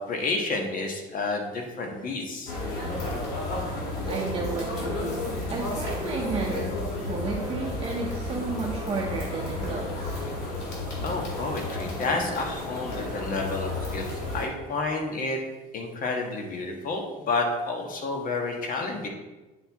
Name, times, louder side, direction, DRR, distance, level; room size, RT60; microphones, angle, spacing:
voice 1, 0.0-2.5 11.0-15.4 15.7-19.1, left 3 dB, 55° left, 2 dB, 1.4 m, -30 dB
sound 1, 2.5-14.5, left 2 dB, 90° left, 2.1 m, -32 dB
voice 2, 4.1-10.1, right 4 dB, 35° right, -1 dB, 0.8 m, -32 dB
8.9 x 4.5 x 3.5 m, 1.1 s
cardioid pair, 110°, 17 cm